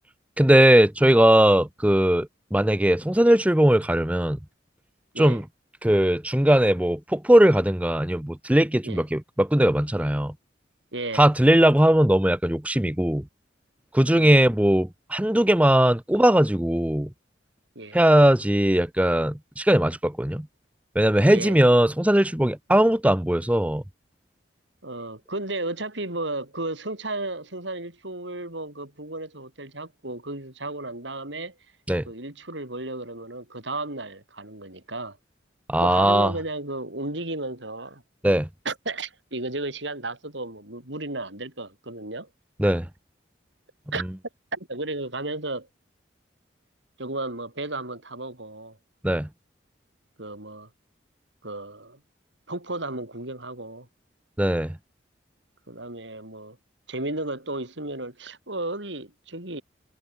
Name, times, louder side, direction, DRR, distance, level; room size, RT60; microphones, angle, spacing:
voice 1, 0.4-4.4 5.2-5.4 5.8-10.3 11.1-13.2 13.9-17.1 17.9-20.5 20.9-23.8 31.9-32.0 35.7-36.3 38.2-38.5 42.6-42.9 49.0-49.3 54.4-54.8, right 1 dB, 5° right, 0.7 m, -19 dB
voice 2, 10.9-11.2 14.1-14.4 17.8-18.0 21.3-21.6 24.8-31.5 32.1-35.2 35.8-38.0 38.7-42.3 43.9-44.1 44.5-45.7 47.0-48.8 50.2-50.7 51.4-52.0 52.5-53.9 55.7-56.6 56.9-59.6, right 2 dB, 75° right, 7.1 m, -33 dB
head